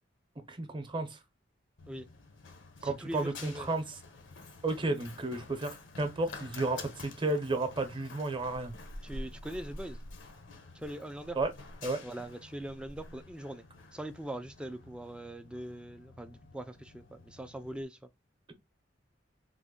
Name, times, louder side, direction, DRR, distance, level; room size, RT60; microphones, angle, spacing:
voice 1, 0.5-1.2 2.8-4.0 4.6-8.7 11.3-11.5 11.8-12.0, right 2 dB, 25° right, 0.7 m, -32 dB
Run, 1.8-17.8, left 2 dB, 75° left, 0.7 m, -49 dB
voice 2, 2.8-3.7 9.0-10.0 10.7-11.4 12.0-13.6 13.9-18.0, right 1 dB, 5° right, 0.3 m, -42 dB
3.4 x 2.1 x 3.7 m
head